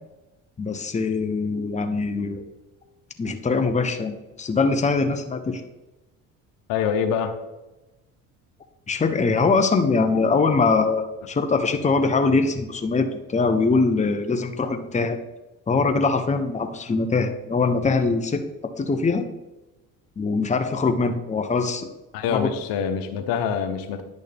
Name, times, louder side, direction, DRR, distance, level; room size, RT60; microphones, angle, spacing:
voice 1, 0.6-2.4 3.2-5.6 8.9-15.2 15.7-18.4 18.8-19.3 20.2-21.9 22.3-22.5, left 4 dB, 20° left, 6 dB, 0.9 m, -22 dB
voice 2, 6.7-7.3 22.1-24.0, left 7 dB, 80° left, 7 dB, 1.0 m, -25 dB
10.5 x 6.3 x 3.5 m, 1.0 s
supercardioid pair, 85°, 34 cm